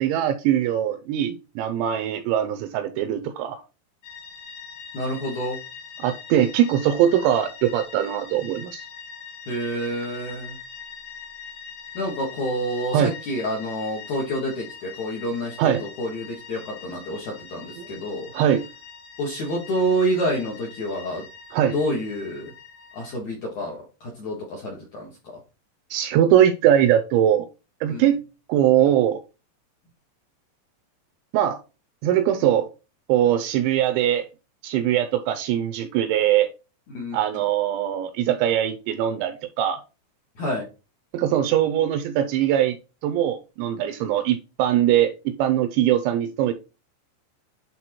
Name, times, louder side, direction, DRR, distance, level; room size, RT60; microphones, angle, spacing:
voice 1, 0.0-3.6 6.0-8.8 12.9-13.1 15.6-15.9 17.8-17.9 18.3-18.6 21.5-21.8 25.9-27.5 27.8-28.2 28.5-29.2 31.3-31.6 32.0-32.7 33.1-34.3 34.6-36.5 37.1-39.8 41.1-42.8 43.0-46.5, right 11 dB, 85° right, 2.6 m, -21 dB
sound 1, 4.0-23.2, left 6 dB, 85° left, 1.8 m, -42 dB
voice 2, 4.9-5.6 9.5-10.6 11.9-18.3 19.2-21.2 21.7-22.5 22.9-25.1 27.9-28.0 36.9-37.2 40.4-40.6, equal, 65° left, 1.9 m, -28 dB
10.0 x 3.7 x 2.9 m
omnidirectional pair, 5.5 m